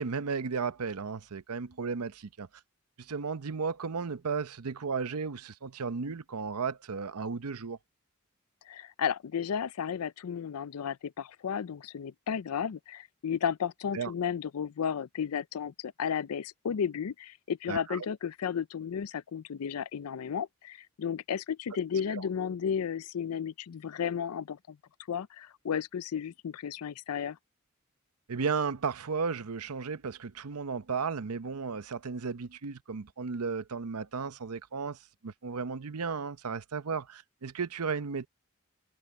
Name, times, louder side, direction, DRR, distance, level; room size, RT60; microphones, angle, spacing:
voice 1, 0.0-2.5 3.0-7.8 13.9-14.1 17.7-18.0 22.2-22.3 28.3-38.3, right 5 dB, 90° right, 0.7 m, -34 dB
voice 2, 8.7-24.8 25.1-27.4, left 7 dB, 85° left, 0.4 m, -33 dB
head